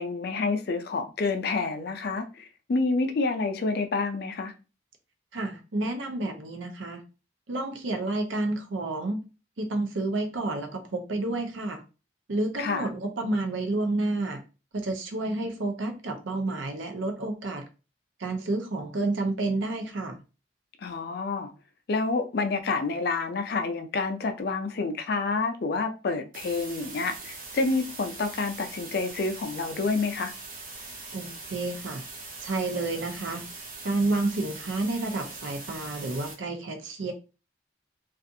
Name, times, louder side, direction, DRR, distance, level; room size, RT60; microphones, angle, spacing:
voice 1, 0.0-4.5 12.6-12.9 20.8-21.5 21.9-30.3, left 3 dB, 55° left, 0.4 m, -28 dB
voice 2, 5.3-7.0 7.5-9.2 9.6-11.8 12.3-14.4 14.7-17.6 18.2-20.2 31.1-32.0 32.4-33.5 33.8-37.1, right 2 dB, 85° right, 0.6 m, -30 dB
sound 1, 26.3-36.3, right 3 dB, 45° right, 0.7 m, -42 dB
2.4 x 2.4 x 2.6 m
head